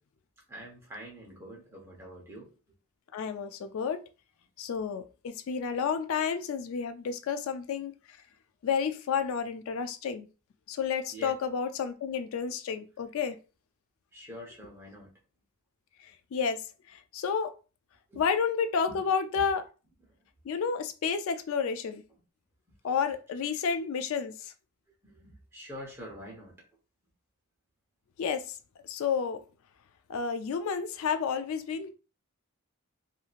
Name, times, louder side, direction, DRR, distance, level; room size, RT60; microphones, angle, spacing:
voice 1, 0.5-2.5 11.1-11.3 14.1-15.1 18.1-18.2 18.9-19.0 25.0-26.6, equal, 10° right, 0.9 m, -45 dB
voice 2, 3.1-4.0 4.6-8.2 8.6-10.3 10.7-13.4 16.0-16.6 16.9-17.5 18.2-19.6 20.5-22.0 22.8-24.5 28.2-28.6 28.8-29.4 30.1-31.9, left 6 dB, 65° left, 0.3 m, -31 dB
2.8 x 2.7 x 2.4 m
head